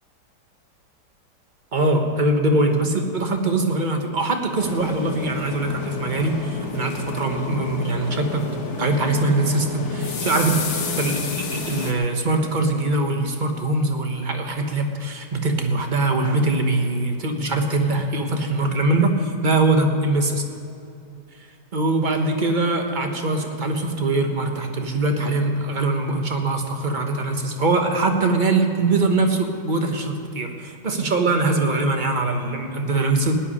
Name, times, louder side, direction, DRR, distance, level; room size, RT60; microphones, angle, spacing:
voice 1, 1.7-8.4 8.8-10.6 11.0-20.4 21.7-33.3, right 2 dB, 30° right, 4 dB, 1.1 m, -22 dB
sound 1, 4.5-11.9, left 4 dB, 45° left, 1.3 m, -30 dB
17.0 x 5.9 x 9.9 m, 2.6 s
omnidirectional pair, 1.9 m